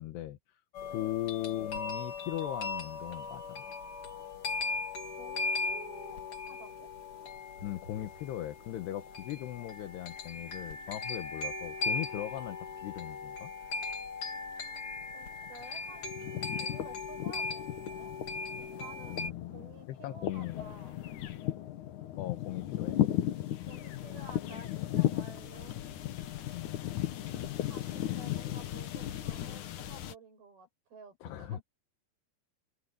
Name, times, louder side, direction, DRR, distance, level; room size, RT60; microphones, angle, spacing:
voice 1, 0.0-3.6 7.6-13.5 19.1-20.6 22.2-23.0 26.5-27.0 31.2-31.6, left 14 dB, 80° left, 3.3 m, -39 dB
sound 1, 0.7-19.3, left 3 dB, 35° left, 2.9 m, -38 dB
voice 2, 5.2-6.2 6.5-6.9 15.1-16.2 16.6-18.1 18.8-21.0 23.6-25.8 27.6-31.6, right 2 dB, 60° right, 9.8 m, -52 dB
sound 2, 15.0-15.6 15.9-30.1, left 13 dB, 65° left, 2.2 m, -36 dB
open air
omnidirectional pair, 4.9 m